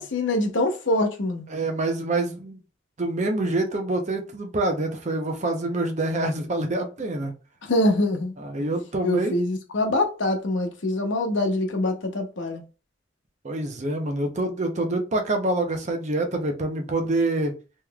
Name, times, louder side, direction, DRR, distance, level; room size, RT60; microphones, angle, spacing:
voice 1, 0.0-1.5 7.6-8.3 8.6-8.7 9.0-12.6, left 1 dB, 80° left, 0.8 m, -24 dB
voice 2, 1.5-2.6 3.0-7.3 8.4-9.3 13.4-17.5, right 2 dB, 40° right, 0.7 m, -26 dB
3.7 x 3.1 x 2.3 m
head